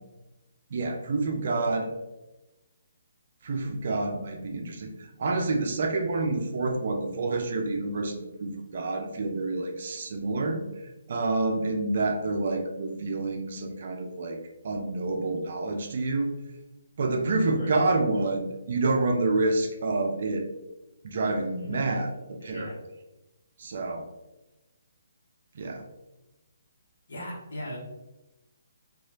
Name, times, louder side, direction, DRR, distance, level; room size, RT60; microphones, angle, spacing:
voice 1, 0.7-1.9 3.4-4.9 5.2-10.6 11.1-14.4 14.6-16.3 17.0-20.4 21.0-22.1 22.4-22.7 23.6-24.0 25.6-25.8, right 2 dB, 55° right, 3 dB, 0.4 m, -28 dB
voice 2, 21.6-21.9 22.4-22.7 27.1-27.8, equal, 60° left, -5 dB, 1.0 m, -38 dB
2.9 x 2.3 x 2.7 m, 1.0 s
hypercardioid pair, 145°, 0 cm